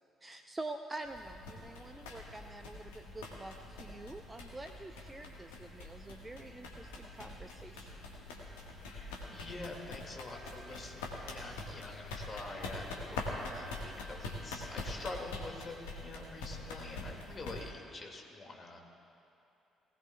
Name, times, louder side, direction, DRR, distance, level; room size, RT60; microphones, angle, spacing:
voice 1, 0.2-7.9, right 2 dB, 20° right, 7 dB, 0.6 m, -46 dB
sound 1, 1.0-17.7, left 2 dB, 70° left, 1.4 m, -44 dB
voice 2, 8.7-18.8, left 2 dB, 35° left, 1 dB, 2.1 m, -46 dB
19.0 x 18.0 x 2.3 m, 2.8 s
figure-of-eight pair, 45°, 0 cm